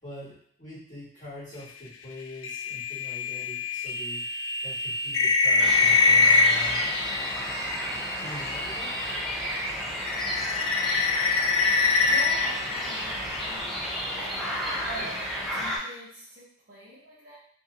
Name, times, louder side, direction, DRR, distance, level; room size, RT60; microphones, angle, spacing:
voice 1, 0.0-4.3 4.6-6.8 8.2-8.9 14.9-15.0, left 1 dB, 40° left, -11 dB, 1.4 m, -43 dB
sound 1, 2.4-9.3 9.6-13.6, left 4 dB, 75° left, 0.3 m, -25 dB
sound 2, 5.6-15.8, equal, ahead, 0.5 m, -32 dB
voice 2, 12.1-13.9 14.1-17.4, right 1 dB, 50° right, -9 dB, 0.8 m, -43 dB
2.8 x 2.6 x 2.4 m, 0.63 s
head